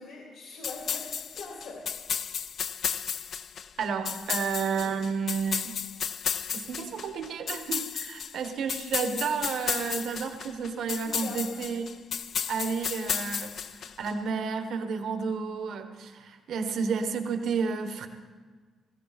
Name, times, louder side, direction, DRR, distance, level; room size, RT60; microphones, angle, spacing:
voice 1, 0.0-1.9 10.7-10.8 11.0-11.7, left 3 dB, 80° left, -2 dB, 2.7 m, -43 dB
sound 1, 0.6-14.1, left 7 dB, 50° left, 0.4 m, -33 dB
voice 2, 3.8-5.8 6.5-11.9 12.5-18.1, right 5 dB, 65° right, 7 dB, 1.3 m, -31 dB
17.5 x 15.5 x 4.2 m, 1.5 s
cardioid pair, 160°, 0 cm